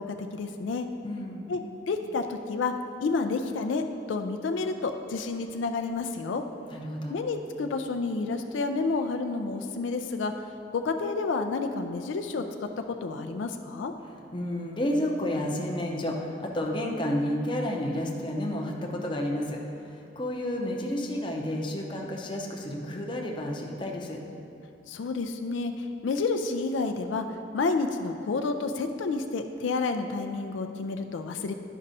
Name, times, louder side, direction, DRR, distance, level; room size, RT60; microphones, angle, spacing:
voice 1, 0.0-0.9 1.5-1.6 1.9-2.7 3.0-6.4 7.1-10.3 10.7-13.9 24.9-27.3 27.5-31.5, left 4 dB, 85° left, 6 dB, 0.4 m, -30 dB
voice 2, 1.0-1.5 6.7-7.2 14.3-24.2, left 1 dB, 25° left, 0 dB, 0.6 m, -31 dB
11.0 x 5.3 x 2.7 m, 2.8 s
head